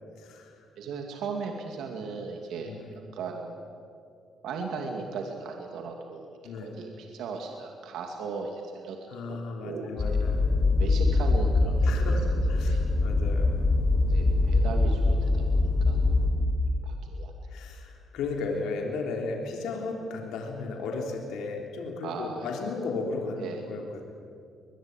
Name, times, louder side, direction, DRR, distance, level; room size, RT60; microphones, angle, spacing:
voice 1, 0.2-0.6 2.6-2.9 6.4-6.8 9.1-10.5 11.8-13.5 17.5-24.1, left 3 dB, 90° left, 1 dB, 3.4 m, -35 dB
voice 2, 0.8-3.6 4.4-9.0 9.3-9.4 9.6-9.9 10.8-12.1 12.6-12.8 14.1-16.0 16.8-17.3 22.0-22.5 23.4-23.6, right 4 dB, 80° right, 2 dB, 2.5 m, -37 dB
sound 1, 10.0-16.3, left 2 dB, 35° left, 6.2 m, -23 dB
22.0 x 22.0 x 9.1 m, 2.4 s
cardioid pair, 90°, 0 cm